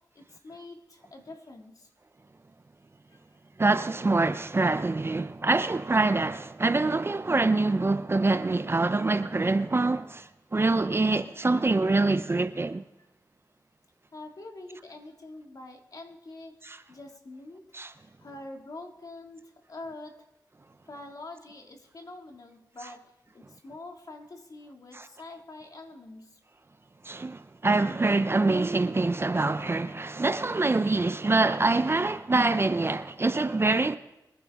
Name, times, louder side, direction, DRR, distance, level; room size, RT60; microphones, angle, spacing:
voice 1, 0.1-1.9 3.1-3.2 13.0-13.1 14.1-16.6 16.9-17.7 18.0-20.2 20.9-26.4, left 2 dB, 55° left, 2.3 m, -45 dB
voice 2, 3.6-12.8 16.6-16.8 17.7-17.9 24.9-25.0 27.0-34.0, right 3 dB, 30° right, 0.6 m, -25 dB
24.0 x 10.5 x 3.6 m
cardioid pair, 55°, 8 cm